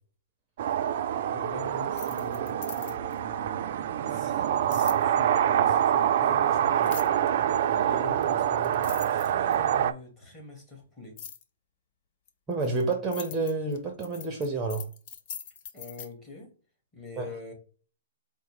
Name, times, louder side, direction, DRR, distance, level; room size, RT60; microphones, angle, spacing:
sound 1, 0.6-9.9, right 10 dB, 50° right, 0.3 m, -26 dB
voice 1, 1.3-3.6 4.1-7.0 7.7-11.2 15.7-16.5 16.9-17.5, left 3 dB, 15° left, 1.6 m, -44 dB
sound 2, 1.8-3.2 4.7-5.0 6.8-7.3 8.2-8.3 8.6-9.7 11.2-11.4 12.3-16.1, left 8 dB, 40° left, 0.5 m, -42 dB
voice 2, 12.5-14.9 17.2-17.3, right 3 dB, 15° right, 0.6 m, -29 dB
4.7 x 2.0 x 4.6 m
hypercardioid pair, 150°, 0 cm